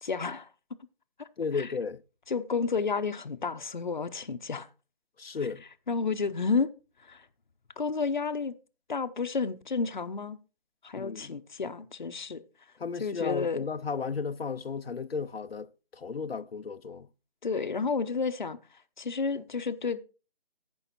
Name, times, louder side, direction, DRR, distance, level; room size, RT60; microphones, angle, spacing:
voice 1, 0.0-0.5 1.2-1.3 1.5-1.7 2.3-4.7 5.9-6.7 7.1-7.3 7.8-8.5 8.9-10.4 10.8-12.4 13.0-13.7 17.4-18.6 19.0-20.0, left 4 dB, 50° left, 0.9 m, -31 dB
voice 2, 1.4-2.0 5.2-5.6 11.0-11.4 12.8-17.1, left 5 dB, 80° left, 0.8 m, -34 dB
14.5 x 5.5 x 4.4 m
figure-of-eight pair, 170°, 30 cm